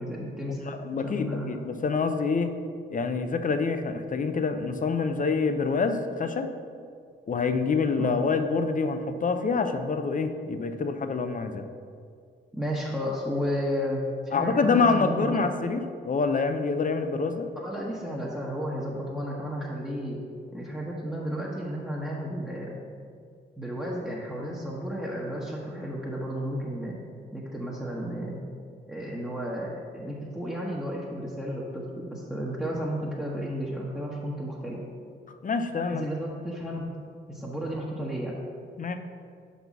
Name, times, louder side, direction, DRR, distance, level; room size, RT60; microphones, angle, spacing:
voice 1, 0.0-1.5 8.0-8.1 12.5-15.4 17.6-20.2 20.5-22.8 23.6-27.0 27.3-28.4 28.9-34.8 35.9-36.8 37.3-38.4, equal, 5° right, -5 dB, 1.1 m, -33 dB
voice 2, 0.7-2.5 2.9-6.5 7.3-11.6 14.3-17.5 35.4-36.1 38.8-39.0, left 4 dB, 40° left, 8 dB, 0.6 m, -26 dB
5.2 x 4.1 x 6.0 m, 2.2 s
supercardioid pair, 50°, 20 cm